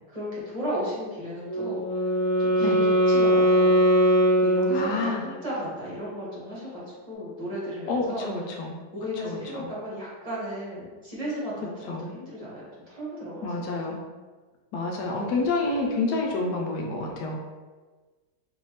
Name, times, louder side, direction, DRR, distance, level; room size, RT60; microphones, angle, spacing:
voice 1, 0.1-2.1 2.4-3.7 4.4-8.3 8.9-13.5, equal, 20° right, -7 dB, 1.3 m, -34 dB
Wind instrument woodwind instrument, 1.4-5.4, equal, 45° left, 0.8 m, -21 dB
voice 2, 4.7-5.2 7.9-8.8 9.2-9.7 11.9-12.1 13.4-14.0 14.7-17.4, left 3 dB, 70° left, 0 dB, 1.2 m, -28 dB
4.4 x 3.2 x 3.2 m, 1.3 s
omnidirectional pair, 1.9 m